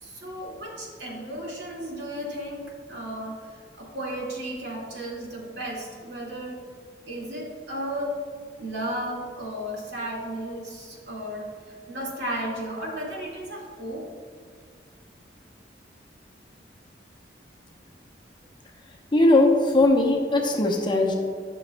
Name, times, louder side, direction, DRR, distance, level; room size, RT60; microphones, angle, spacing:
voice 1, 0.0-6.6 7.0-8.1 8.6-14.1, right 1 dB, 75° right, -4 dB, 2.0 m, -34 dB
voice 2, 19.1-21.1, left 2 dB, 25° left, 1 dB, 0.8 m, -19 dB
12.0 x 6.2 x 2.2 m, 2.1 s
head